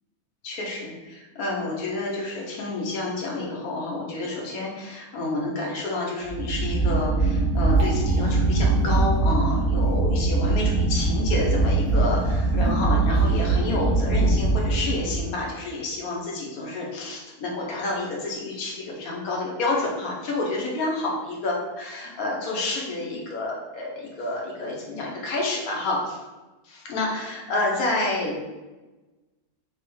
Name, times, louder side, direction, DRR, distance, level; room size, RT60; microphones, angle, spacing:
voice 1, 0.4-26.2 26.6-28.4, left 2 dB, 75° left, -2 dB, 1.3 m, -29 dB
sound 1, 6.2-15.4, right 3 dB, 30° right, 1.2 m, -22 dB
3.4 x 3.0 x 3.1 m, 1.2 s
omnidirectional pair, 1.6 m